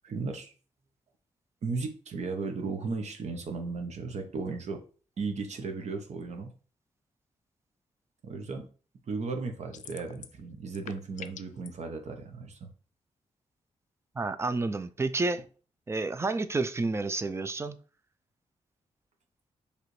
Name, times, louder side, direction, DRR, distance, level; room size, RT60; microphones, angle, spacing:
voice 1, 0.0-0.5 1.6-4.8 5.2-6.5 8.2-8.7 9.1-12.7, right 4 dB, 65° right, 0.9 m, -35 dB
sound 1, 9.7-10.4 10.7-11.7, left 9 dB, 75° left, 0.4 m, -44 dB
voice 2, 14.2-15.4 15.9-17.8, right 3 dB, 20° right, 0.4 m, -30 dB
4.8 x 3.3 x 3.2 m
cardioid pair, 100°, 13 cm